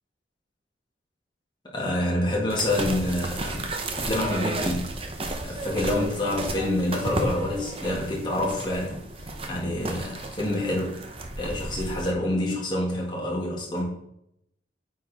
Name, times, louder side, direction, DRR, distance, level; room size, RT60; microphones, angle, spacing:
voice 1, 1.7-3.7 3.9-4.9 5.4-11.0 11.4-13.9, left 1 dB, 25° left, -3 dB, 1.9 m, -27 dB
sound 1, 2.5-12.1, right 2 dB, 30° right, 0.8 m, -33 dB
9.0 x 4.4 x 3.5 m, 0.76 s
head